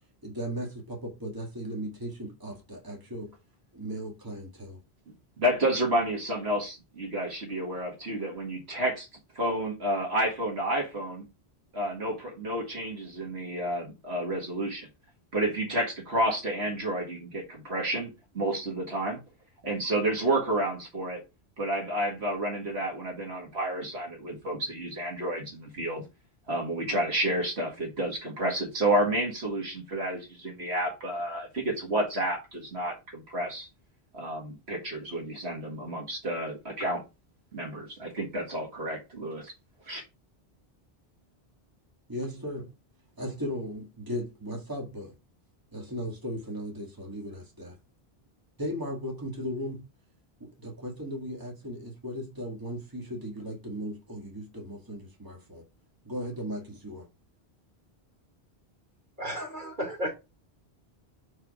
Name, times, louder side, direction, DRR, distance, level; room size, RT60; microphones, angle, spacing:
voice 1, 0.2-3.3 3.7-4.8 42.1-42.7 43.2-45.1 45.7-47.8 48.6-49.8 50.4-55.6 56.1-57.1, equal, 20° right, 1.9 m, -37 dB
voice 2, 5.4-9.1 9.4-11.3 11.7-14.9 15.3-19.2 19.6-21.2 21.6-26.0 26.5-33.7 34.1-37.0 37.5-39.5 39.9-40.0, right 1 dB, 80° right, 2.1 m, -30 dB
voice 3, 59.2-60.1, equal, 50° right, 2.9 m, -33 dB
6.0 x 4.6 x 4.9 m
omnidirectional pair, 1.1 m